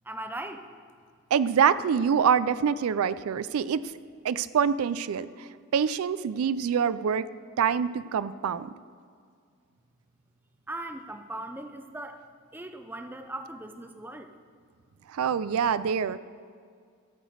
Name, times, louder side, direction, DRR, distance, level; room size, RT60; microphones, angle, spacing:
voice 1, 0.0-0.7 10.7-12.3 12.5-14.3, right 1 dB, 10° right, 7 dB, 0.5 m, -39 dB
voice 2, 1.3-3.8 4.2-7.3 7.6-8.7 15.1-16.2, right 7 dB, 90° right, 16 dB, 0.4 m, -25 dB
14.0 x 5.0 x 7.9 m, 2.1 s
head